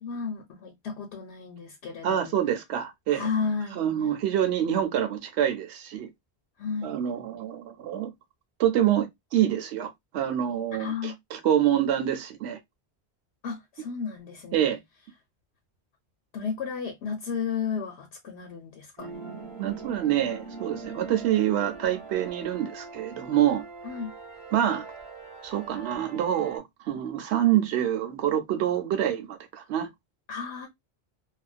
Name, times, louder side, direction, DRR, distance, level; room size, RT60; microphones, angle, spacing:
voice 1, 0.0-2.4 3.1-3.8 6.6-6.9 10.8-11.2 13.4-14.7 16.3-19.1 23.8-24.1 30.3-30.7, left 6 dB, 85° left, 0.9 m, -33 dB
voice 2, 2.0-3.3 3.8-6.1 6.8-8.1 8.6-12.6 14.5-14.8 19.6-23.6 24.5-24.9 25.4-29.9, right 11 dB, 85° right, 0.9 m, -26 dB
sound 1, 19.0-26.6, right 4 dB, 30° right, 0.9 m, -42 dB
2.4 x 2.2 x 2.3 m
omnidirectional pair, 1.1 m